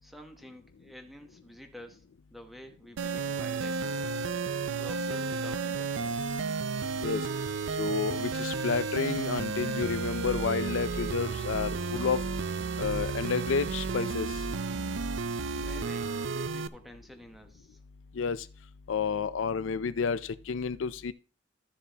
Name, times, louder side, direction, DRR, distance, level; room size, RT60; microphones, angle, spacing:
voice 1, 0.0-2.0 2.3-4.3 4.8-6.3 15.6-17.8, equal, ahead, 1.0 m, -49 dB
sound 1, 3.0-16.7, right 4 dB, 75° right, 0.5 m, -32 dB
voice 2, 7.8-12.2 12.8-14.3 18.1-18.5 18.9-21.1, left 5 dB, 90° left, 0.5 m, -30 dB
13.0 x 6.9 x 2.8 m
head